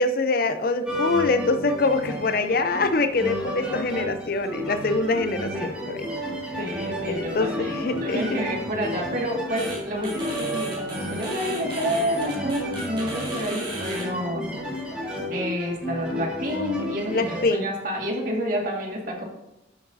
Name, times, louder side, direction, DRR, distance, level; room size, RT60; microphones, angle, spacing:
voice 1, 0.0-6.1 7.0-8.2 17.1-17.7, left 3 dB, 50° left, 10 dB, 0.6 m, -24 dB
sound 1, 0.8-17.4, equal, 5° right, 2.1 m, -32 dB
voice 2, 6.6-7.7 8.0-14.6 15.3-19.3, equal, 45° right, -1 dB, 2.1 m, -29 dB
sound 2, 9.6-9.8 10.0-14.0, right 1 dB, 25° right, 3.5 m, -35 dB
12.5 x 7.5 x 2.8 m, 0.91 s
head